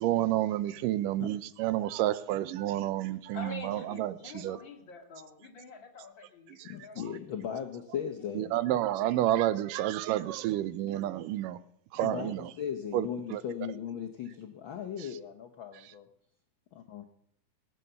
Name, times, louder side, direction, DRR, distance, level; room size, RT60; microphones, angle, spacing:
voice 1, 0.0-4.6 6.6-6.7 8.4-11.6 11.9-12.5 12.9-13.1 13.3-13.4, right 13 dB, 90° right, 2.3 m, -30 dB
voice 2, 3.3-7.1, left 4 dB, 40° left, 2.5 m, -46 dB
voice 3, 6.6-8.6 12.0-16.1 16.9-17.0, left 8 dB, 85° left, 1.0 m, -38 dB
19.0 x 9.0 x 6.8 m
omnidirectional pair, 3.7 m